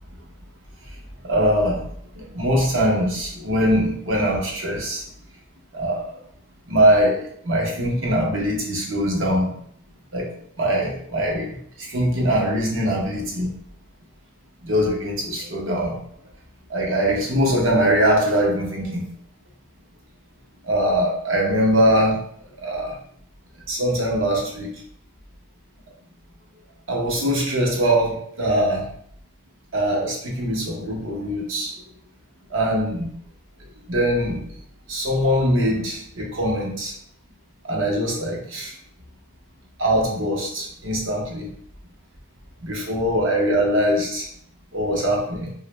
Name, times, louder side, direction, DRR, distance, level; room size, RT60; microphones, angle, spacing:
voice 1, 1.2-1.8 2.2-5.0 5.7-6.0 6.7-7.2 7.4-9.5 10.1-10.3 10.6-11.5 11.9-13.5 14.6-15.9 16.7-19.0 20.7-22.2 22.6-22.9 23.7-24.7 26.9-28.8 29.7-31.7 32.5-33.1 33.9-34.4 34.9-36.9 37.7-38.7 39.8-41.5 42.6-44.2 44.7-45.5, equal, 70° right, -2 dB, 0.9 m, -22 dB
2.9 x 2.4 x 3.2 m, 0.65 s
head